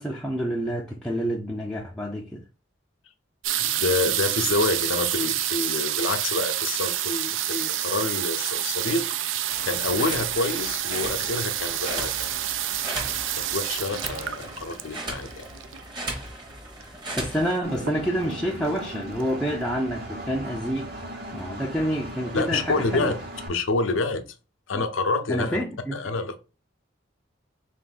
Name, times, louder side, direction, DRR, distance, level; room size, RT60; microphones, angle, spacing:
voice 1, 0.0-2.4 16.8-20.9 21.3-23.2 24.7-24.8 25.3-25.9, equal, 5° left, 0.4 m, -28 dB
sound 1, 3.4-16.0 16.8-16.9 17.1-17.5 17.8-18.4 18.9-19.0 19.2-19.3, right 11 dB, 80° right, 0.4 m, -28 dB
voice 2, 3.6-9.0 9.6-12.3 13.4-15.5 22.3-23.2 23.5-24.2 24.7-25.6 25.9-26.4, left 3 dB, 85° left, 0.6 m, -27 dB
sound 2, 9.5-17.6, right 1 dB, 20° right, 0.9 m, -37 dB
Engine, 17.6-23.5, right 1 dB, 50° right, 0.9 m, -38 dB
3.6 x 2.5 x 3.8 m
head